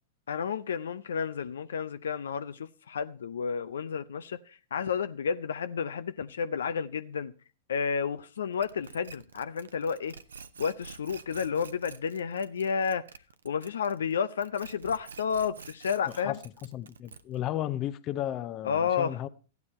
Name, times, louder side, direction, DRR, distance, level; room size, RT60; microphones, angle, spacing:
voice 1, 0.3-7.3 7.7-10.1 10.6-13.0 13.4-16.4 18.6-19.2, left 6 dB, 75° left, 0.6 m, -31 dB
sound 1, 8.6-14.1 14.4-17.5, right 5 dB, 80° right, 0.8 m, -47 dB
voice 2, 16.1-16.4 16.7-19.3, left 12 dB, 40° left, 0.8 m, -34 dB
14.0 x 9.6 x 4.2 m
hypercardioid pair, 105°, 0 cm